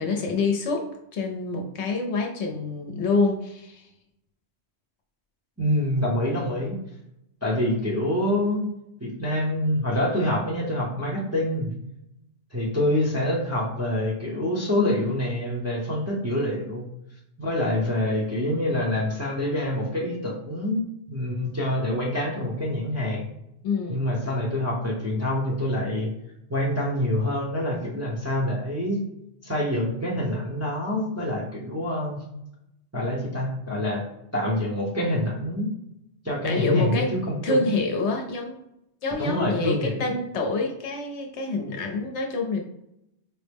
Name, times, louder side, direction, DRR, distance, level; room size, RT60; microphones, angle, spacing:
voice 1, 0.0-3.9 23.6-24.0 36.4-38.6 39.0-42.6, left 3 dB, 65° left, 2 dB, 0.9 m, -27 dB
voice 2, 5.6-6.8 7.4-8.7 9.0-11.7 12.5-16.9 17.4-20.8 21.1-23.3 23.9-26.1 26.5-29.0 29.4-32.2 32.9-34.0 34.3-35.7 36.2-37.7 39.2-40.0, left 1 dB, 15° right, -5 dB, 0.6 m, -26 dB
4.6 x 2.0 x 3.4 m, 0.83 s
omnidirectional pair, 1.3 m